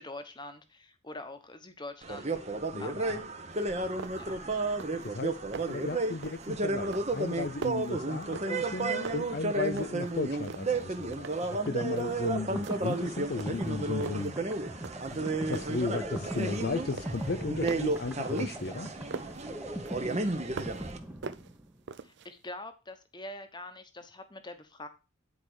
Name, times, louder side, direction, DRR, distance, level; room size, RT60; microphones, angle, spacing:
voice 1, 0.0-3.3 4.2-4.6 22.0-24.9, left 2 dB, 20° left, 1.1 m, -45 dB
sound 1, 2.0-21.0, right 2 dB, 30° right, 1.1 m, -33 dB
voice 2, 2.7-3.2 5.0-5.4 5.7-14.3 15.1-18.9, left 3 dB, 50° left, 0.6 m, -35 dB
sound 2, 3.5-3.6 4.0-4.4 4.7-5.1 5.4-5.9 6.2-6.5 6.9-8.8 9.0-10.1 10.4-11.6 12.0-12.2 12.6-13.0 13.4-14.3 14.8-15.2 15.5-16.6 16.9-19.4 19.8-20.9 21.2-22.3, right 4 dB, 55° right, 0.5 m, -43 dB
sound 3, 11.5-21.9, right 1 dB, 10° right, 1.0 m, -41 dB
9.7 x 4.7 x 6.4 m
head